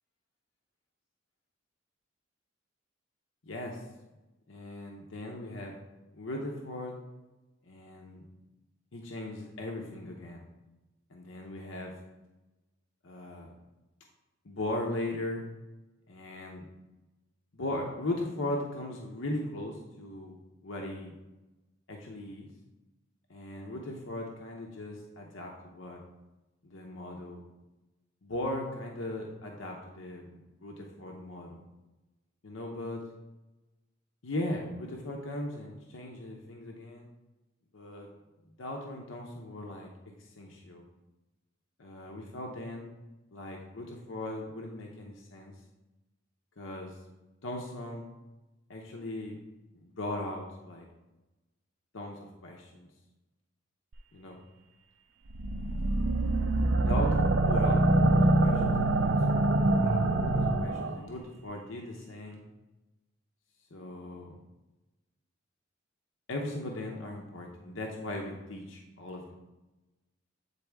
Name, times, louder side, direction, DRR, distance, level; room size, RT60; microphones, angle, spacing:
voice 1, 3.4-3.8 4.5-5.7 6.1-7.0 7.6-8.3 8.9-10.4 11.1-11.9 13.0-13.5 14.4-15.4 16.1-16.7 17.5-20.4 20.6-21.1 21.9-22.5 23.3-26.0 26.6-27.4 28.2-31.6 32.4-33.0 34.2-37.1 37.7-38.1 38.6-39.9 40.2-40.8 41.8-42.9 43.3-45.5 46.6-47.0 47.4-48.1 48.7-49.4 49.7-50.9 51.9-52.9 54.1-54.4 55.7-56.1 56.8-59.2 59.7-62.4 63.7-64.4 66.3-69.3, left 1 dB, 85° left, 0 dB, 0.8 m, -38 dB
sound 1, 55.3-61.0, right 2 dB, 70° right, 0.6 m, -25 dB
8.4 x 4.1 x 3.4 m, 1.1 s
head